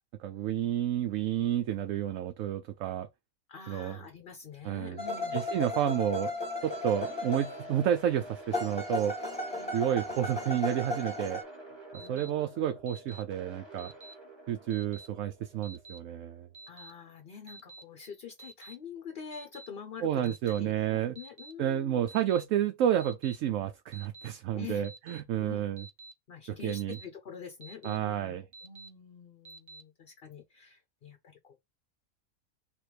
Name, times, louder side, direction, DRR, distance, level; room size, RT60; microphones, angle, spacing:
voice 1, 0.2-3.1 3.7-4.0 4.6-5.0 5.3-6.3 6.6-9.1 9.7-11.4 11.9-13.9 14.5-16.5 20.0-21.2 21.6-25.9 26.6-27.0 27.8-28.4, right 10 dB, 75° right, 0.9 m, -30 dB
voice 2, 3.5-5.4 9.6-9.8 12.0-12.3 16.7-22.1 24.5-24.8 25.4-25.7 26.3-31.6, left 6 dB, 50° left, 0.9 m, -46 dB
sound 1, 5.0-8.0 8.5-11.4, left 2 dB, 5° left, 1.1 m, -35 dB
sound 2, 6.6-16.7, right 1 dB, 20° right, 1.3 m, -48 dB
Alarm, 11.9-12.3 12.9-13.2 13.8-14.1 14.7-15.1 15.6-16.0 16.5-16.9 17.5-17.8 18.4-18.7 19.3-19.7 20.2-20.6 21.1-21.5 22.1-22.4 23.0-23.4 23.9-24.3 24.8-25.2 25.8-26.1 26.7-27.0 27.6-28.0 28.5-28.9 29.4-29.8, right 3 dB, 35° right, 0.4 m, -49 dB
3.5 x 3.1 x 4.8 m
omnidirectional pair, 1.4 m